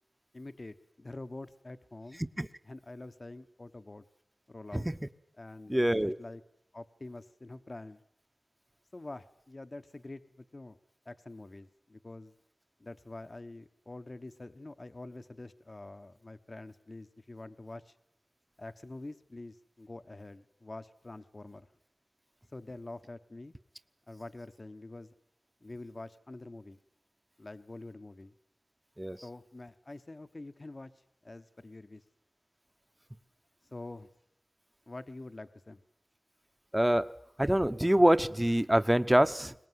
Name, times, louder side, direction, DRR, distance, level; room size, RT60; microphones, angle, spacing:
voice 1, 0.3-2.2 2.7-4.0 4.5-4.9 5.4-6.4 6.7-8.0 8.9-10.8 11.0-12.3 12.8-18.0 18.6-21.7 22.5-23.5 24.1-25.1 25.6-26.8 27.4-28.3 29.2-32.0 33.7-34.1 34.9-35.8, left 2 dB, 45° left, 10 dB, 1.1 m, -46 dB
voice 2, 5.7-6.2 29.0-29.2 36.7-37.1 37.4-39.5, right 1 dB, 10° right, 12 dB, 1.0 m, -25 dB
23.0 x 20.0 x 9.5 m, 0.73 s
wide cardioid pair, 50°, 0 cm